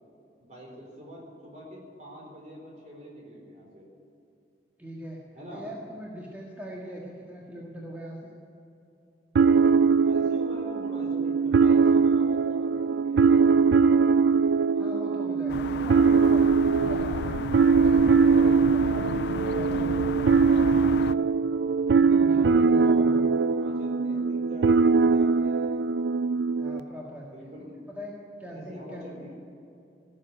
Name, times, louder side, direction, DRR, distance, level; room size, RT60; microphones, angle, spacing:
voice 1, 0.4-3.9 5.3-5.6 10.0-14.1 22.2-25.9 27.3-27.9 28.5-29.3, equal, 45° right, -1 dB, 4.4 m, -44 dB
voice 2, 4.8-5.2 5.5-8.3 14.8-17.2 17.7-21.4 21.9-23.3 26.5-27.3 27.6-28.1 28.4-29.2, equal, 10° right, -4 dB, 1.8 m, -41 dB
sound 1, 9.3-26.8, right 5 dB, 75° right, 0.4 m, -22 dB
sound 2, 15.5-21.1, left 6 dB, 70° left, 0.3 m, -34 dB
17.5 x 7.7 x 9.9 m, 2.7 s
head